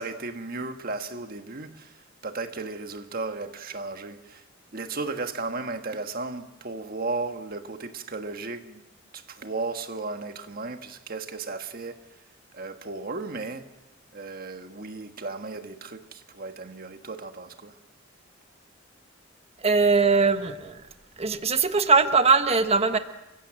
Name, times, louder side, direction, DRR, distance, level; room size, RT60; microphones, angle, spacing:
voice 1, 0.0-4.4 4.7-8.8 9.1-12.0 12.5-13.7 14.1-17.8, right 3 dB, 50° right, 1.4 m, -35 dB
voice 2, 19.6-20.8 21.2-23.0, right 4 dB, 35° right, 1.2 m, -21 dB
29.5 x 15.5 x 7.6 m
head